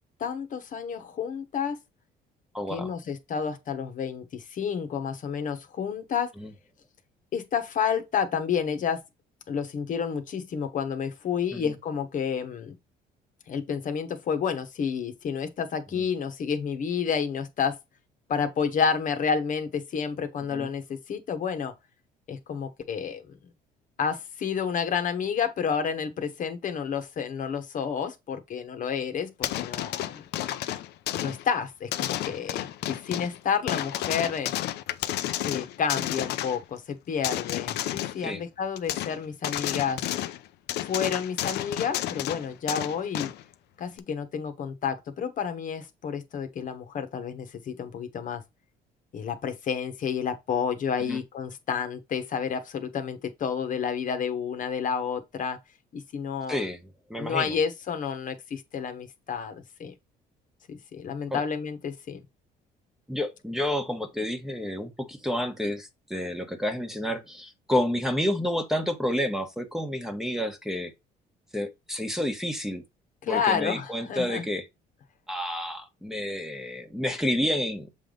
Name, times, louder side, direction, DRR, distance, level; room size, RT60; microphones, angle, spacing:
voice 1, 0.2-1.8 2.7-6.3 7.3-9.0 9.5-12.7 13.5-17.8 18.3-21.7 22.3-23.4 24.0-30.2 31.2-34.5 35.4-40.0 40.8-43.3 43.8-48.4 49.1-55.6 55.9-56.7 57.2-59.9 60.7-62.2 73.2-74.4, left 6 dB, 50° left, 1.2 m, -30 dB
voice 2, 2.5-2.9 6.4-6.5 11.5-11.7 16.0-16.1 20.5-20.7 38.2-38.4 51.0-51.2 56.5-56.8 57.1-57.6 61.3-61.4 63.1-70.9 71.5-72.8 73.3-74.7 75.3-77.9, left 1 dB, 5° right, 1.2 m, -30 dB
sound 1, 29.4-31.4 31.9-33.4 33.7-36.6 37.2-38.2 38.8-39.2 39.4-40.4 40.7-43.4 44.0-44.1, left 13 dB, 80° left, 0.7 m, -31 dB
7.4 x 3.5 x 3.9 m
cardioid pair, 110°, 17 cm